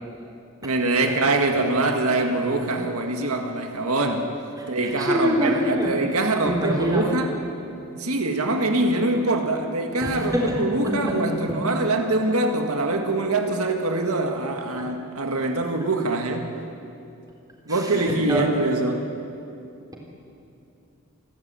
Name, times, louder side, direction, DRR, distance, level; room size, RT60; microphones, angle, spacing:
voice 1, 0.6-4.3 4.7-7.3 8.0-16.5 17.7-19.1, right 2 dB, 85° right, 4 dB, 1.8 m, -24 dB
voice 2, 5.0-5.9 6.4-7.0 10.0-10.4 17.7-18.4, equal, 15° right, -2 dB, 3.9 m, -24 dB
28.5 x 12.5 x 8.9 m, 2.7 s
head